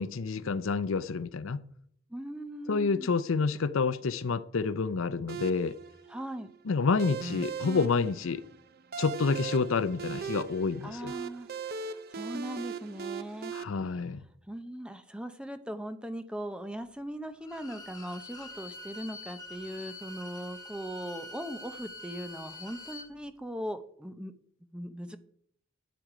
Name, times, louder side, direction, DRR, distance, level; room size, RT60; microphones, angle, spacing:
voice 1, 0.0-1.6 2.7-5.8 6.7-8.4 9.0-11.1 13.5-14.2, left 4 dB, 70° left, 0.5 m, -29 dB
voice 2, 2.1-3.1 6.1-6.5 10.8-11.5 12.1-13.5 14.5-24.3 24.6-25.2, equal, 5° right, 0.6 m, -39 dB
sound 1, 5.3-13.6, right 6 dB, 45° right, 0.5 m, -39 dB
Bowed string instrument, 17.4-23.1, left 1 dB, 15° left, 1.6 m, -45 dB
12.0 x 7.8 x 4.9 m
head